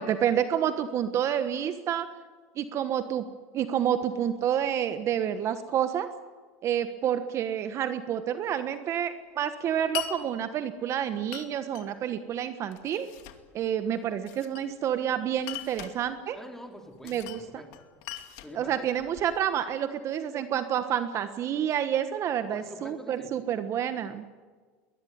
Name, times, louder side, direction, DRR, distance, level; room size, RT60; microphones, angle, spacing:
voice 1, 0.0-2.1 2.6-3.2 3.5-6.1 6.6-13.1 13.5-16.4 17.0-17.6 18.5-24.2, right 9 dB, 45° right, 10 dB, 1.3 m, -29 dB
Glass, 9.9-10.2 11.3-11.9 12.7-13.4 14.3-15.0 15.4-16.0 17.0-17.4 17.7-19.4, left 14 dB, 70° left, 2.4 m, -40 dB
voice 2, 16.3-17.7 18.4-18.9 22.5-23.3, left 1 dB, 5° left, 3 dB, 3.8 m, -45 dB
22.0 x 21.0 x 9.5 m, 1.5 s
supercardioid pair, 110°, 7 cm